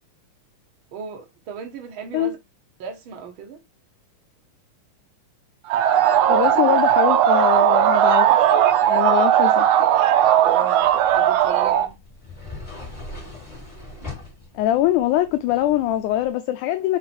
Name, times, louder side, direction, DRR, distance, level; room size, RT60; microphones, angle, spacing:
voice 1, 0.9-2.4 2.8-3.6 10.5-10.9 11.1-12.0, right 6 dB, 65° right, 1.2 m, -37 dB
sound 1, 5.7-11.9, right 10 dB, 85° right, 1.4 m, -17 dB
voice 2, 6.3-8.5 8.9-9.7 14.6-17.0, left 13 dB, 80° left, 1.9 m, -22 dB
sound 2, 10.8-16.3, left 2 dB, 15° left, 3.3 m, -41 dB
5.9 x 4.3 x 4.3 m
omnidirectional pair, 3.7 m